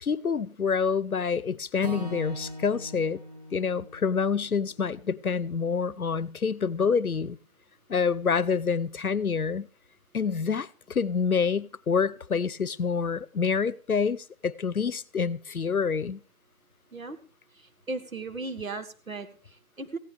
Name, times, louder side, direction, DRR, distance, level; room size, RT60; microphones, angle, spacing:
voice 1, 0.0-3.2 3.5-7.4 7.9-9.7 10.1-16.2, left 5 dB, 80° left, 0.9 m, -27 dB
Acoustic guitar / Strum, 1.8-6.1, left 1 dB, 30° right, 1.4 m, -42 dB
voice 2, 17.5-20.0, right 3 dB, 70° right, 2.0 m, -37 dB
17.0 x 16.0 x 3.4 m
figure-of-eight pair, 175°, 43 cm